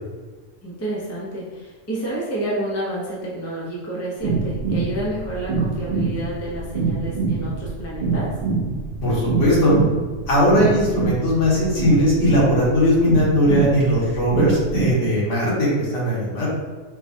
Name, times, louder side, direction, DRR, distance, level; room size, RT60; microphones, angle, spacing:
voice 1, 0.6-8.3, right 1 dB, 20° left, -5 dB, 0.4 m, -29 dB
sound 1, 4.2-14.9, right 4 dB, 50° right, 0.7 m, -24 dB
voice 2, 9.0-9.7 10.3-16.5, equal, 65° left, -5 dB, 1.3 m, -19 dB
4.6 x 2.2 x 2.6 m, 1.3 s
omnidirectional pair, 1.4 m